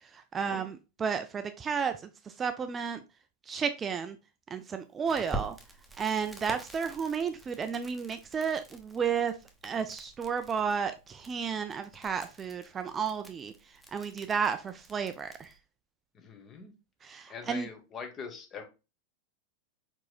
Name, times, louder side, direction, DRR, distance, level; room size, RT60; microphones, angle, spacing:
voice 1, 0.1-1.9 2.3-3.0 3.5-4.2 4.5-5.6 6.0-9.3 9.6-13.5 13.9-15.5 17.0-17.7, right 6 dB, 20° right, 0.4 m, -32 dB
Crackle, 5.1-15.6, right 2 dB, ahead, 1.0 m, -46 dB
voice 2, 16.1-16.7 17.3-18.7, left 5 dB, 25° left, 1.2 m, -43 dB
4.8 x 4.7 x 2.3 m
figure-of-eight pair, 90°, 0 cm